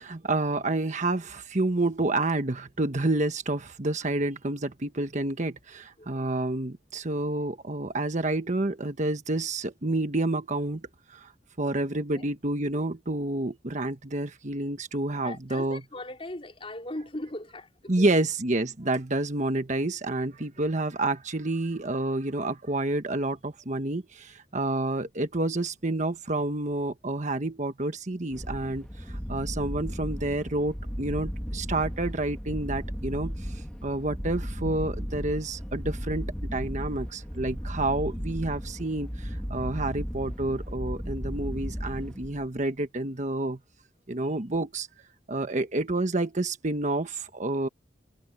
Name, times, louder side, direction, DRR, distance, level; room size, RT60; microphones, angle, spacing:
voice 1, 0.0-10.8 11.1-11.3 11.6-15.8 17.9-33.5 33.8-43.6 44.1-44.9 45.3-47.7, right 2 dB, 45° right, 1.3 m, -29 dB
voice 2, 15.1-18.1 20.6-20.7 45.5-45.7, left 1 dB, 30° left, 4.5 m, -40 dB
sound 1, 28.3-42.6, equal, 5° left, 2.1 m, -35 dB
head